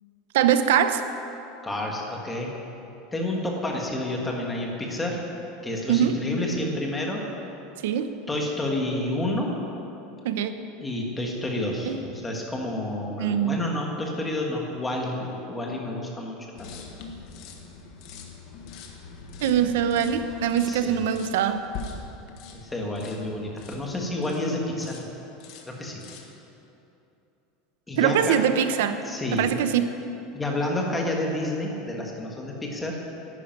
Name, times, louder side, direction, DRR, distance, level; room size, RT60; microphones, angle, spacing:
voice 1, 0.3-1.0 5.9-6.1 7.8-8.2 10.2-10.5 11.9-12.0 13.2-13.6 19.4-21.6 28.0-29.0 29.3-29.9, right 9 dB, 80° right, 10 dB, 0.8 m, -23 dB
voice 2, 1.6-2.6 3.1-5.2 5.6-7.2 8.3-9.5 10.8-16.8 20.7-21.1 22.5-25.0 25.6-26.0 27.9-28.4 29.0-29.5 30.3-33.0, left 1 dB, 10° left, -1 dB, 1.6 m, -29 dB
sound 1, 16.6-24.5 24.8-25.1 25.4-26.4, left 4 dB, 45° left, 1.5 m, -43 dB
11.5 x 9.9 x 9.1 m, 2.9 s
supercardioid pair, 175°, 0 cm